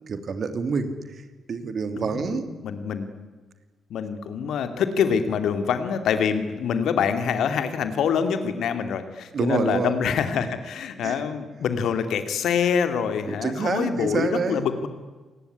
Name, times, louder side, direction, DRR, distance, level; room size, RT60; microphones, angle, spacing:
voice 1, 0.1-0.9 1.5-2.4 9.3-9.9 11.0-11.1 13.3-14.6, right 5 dB, 50° right, 9 dB, 2.9 m, -27 dB
voice 2, 1.9-3.2 3.9-14.9, left 7 dB, 65° left, 9 dB, 2.5 m, -25 dB
28.0 x 20.0 x 10.0 m, 1.3 s
figure-of-eight pair, 40°, 0 cm